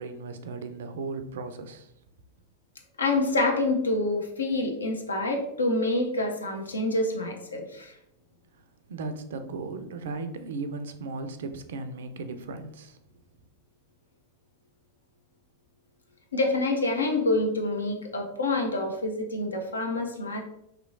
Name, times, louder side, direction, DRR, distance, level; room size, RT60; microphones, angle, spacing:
voice 1, 0.0-1.9 8.9-13.0, right 3 dB, 60° right, 8 dB, 0.3 m, -36 dB
voice 2, 3.0-7.9 16.3-20.4, left 2 dB, 75° left, 3 dB, 0.5 m, -27 dB
3.0 x 2.9 x 2.5 m, 0.78 s
figure-of-eight pair, 90°, 0 cm